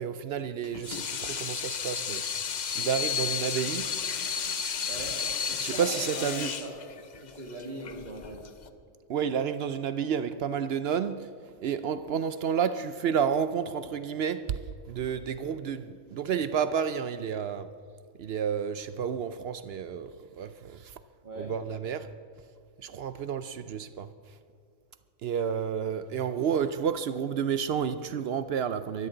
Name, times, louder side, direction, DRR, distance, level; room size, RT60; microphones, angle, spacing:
voice 1, 0.0-2.2 2.8-3.9 4.4-4.5 5.6-6.5 9.1-11.3 11.6-14.6 14.9-17.7 18.2-20.9 21.4-22.1 22.8-24.1 25.2-29.1, right 7 dB, 65° right, 0.7 m, -30 dB
Water tap faucet / Sink (filling or washing), 0.6-8.7, left 7 dB, 45° left, 0.7 m, -33 dB
voice 2, 4.8-5.2 5.5-5.9 6.1-6.8 7.2-8.4 21.2-21.5, right 1 dB, 40° right, 2.3 m, -40 dB
23.5 x 12.5 x 3.8 m
omnidirectional pair, 1.3 m